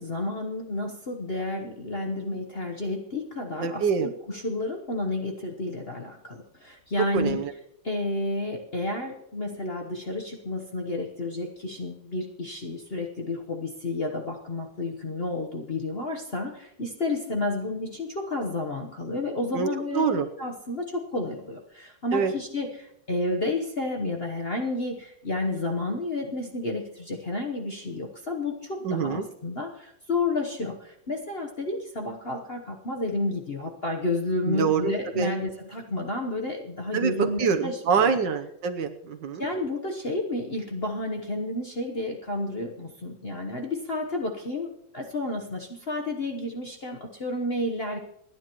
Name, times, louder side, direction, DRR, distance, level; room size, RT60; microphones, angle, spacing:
voice 1, 0.0-7.5 7.8-38.2 39.4-48.0, left 2 dB, 40° left, 2 dB, 1.0 m, -31 dB
voice 2, 3.6-4.1 7.1-7.5 19.5-19.7 19.9-20.3 22.1-22.3 28.8-29.3 34.5-35.3 36.9-39.5, right 6 dB, 65° right, 7 dB, 1.4 m, -25 dB
29.0 x 10.0 x 3.0 m, 0.78 s
omnidirectional pair, 2.3 m